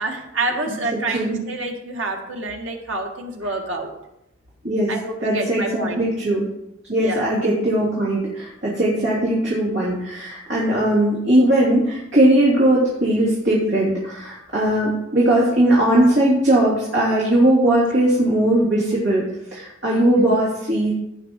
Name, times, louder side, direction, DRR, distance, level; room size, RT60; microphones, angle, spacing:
voice 1, 0.0-3.9 4.9-6.1 7.0-7.2, right 2 dB, 90° right, 2 dB, 1.8 m, -27 dB
voice 2, 0.7-1.4 4.6-6.5 6.9-19.2 19.5-20.9, right 1 dB, 65° right, -6 dB, 3.0 m, -19 dB
16.5 x 6.0 x 3.8 m, 0.85 s
head